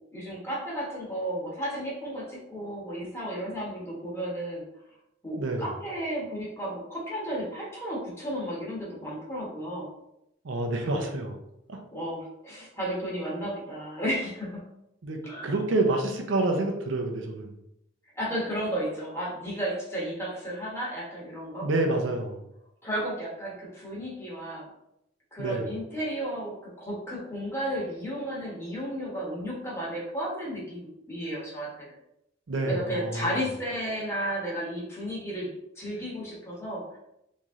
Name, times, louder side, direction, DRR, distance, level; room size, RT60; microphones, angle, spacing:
voice 1, 0.1-4.6 5.2-9.9 10.9-11.1 11.9-14.6 15.2-15.5 18.1-21.7 22.8-24.6 25.3-31.9 32.6-37.0, equal, 15° left, -5 dB, 1.1 m, -33 dB
voice 2, 5.4-5.7 10.4-11.4 11.7-11.8 15.0-17.6 21.6-22.4 25.4-25.7 32.5-33.5, right 2 dB, 65° right, 3 dB, 0.5 m, -28 dB
3.1 x 2.7 x 3.5 m, 0.82 s
head